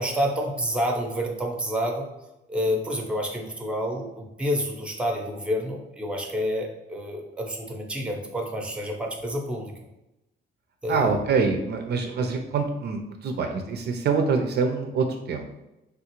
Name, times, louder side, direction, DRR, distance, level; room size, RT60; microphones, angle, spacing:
voice 1, 0.0-2.1 2.5-9.7 10.8-11.1, equal, 5° right, 2 dB, 0.6 m, -28 dB
voice 2, 10.9-15.4, right 5 dB, 55° right, 4 dB, 0.4 m, -25 dB
3.3 x 2.3 x 2.9 m, 0.94 s
cardioid pair, 90°, 20 cm